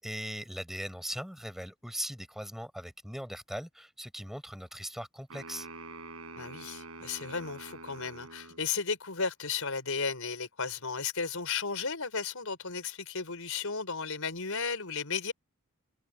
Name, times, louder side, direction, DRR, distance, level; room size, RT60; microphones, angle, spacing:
voice 1, 0.0-5.7, equal, ahead, 7.6 m, -39 dB
sound 1, 5.3-8.6, right 3 dB, 80° right, 5.6 m, -46 dB
voice 2, 6.3-15.3, left 5 dB, 75° left, 4.7 m, -34 dB
head